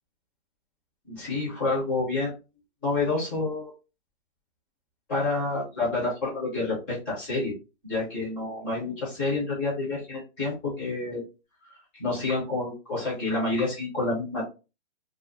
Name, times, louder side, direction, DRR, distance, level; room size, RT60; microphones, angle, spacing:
voice 1, 1.1-2.3 2.8-3.7 5.1-7.5 7.9-11.2 11.9-14.4, left 3 dB, 5° left, -7 dB, 0.5 m, -28 dB
2.4 x 2.3 x 2.4 m, 0.30 s
hypercardioid pair, 160°, 32 cm